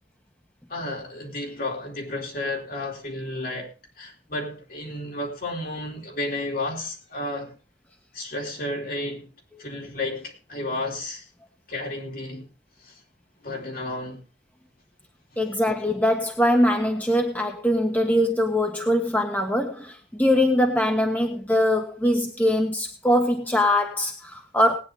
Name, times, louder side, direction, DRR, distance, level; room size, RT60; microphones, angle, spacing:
voice 1, 0.7-7.6 8.1-9.3 9.6-11.2 11.7-12.5 12.8-13.0 13.4-14.2, left 2 dB, 55° left, 4.2 m, -32 dB
voice 2, 15.4-24.8, left 1 dB, 10° left, 1.4 m, -22 dB
19.5 x 9.7 x 3.4 m
head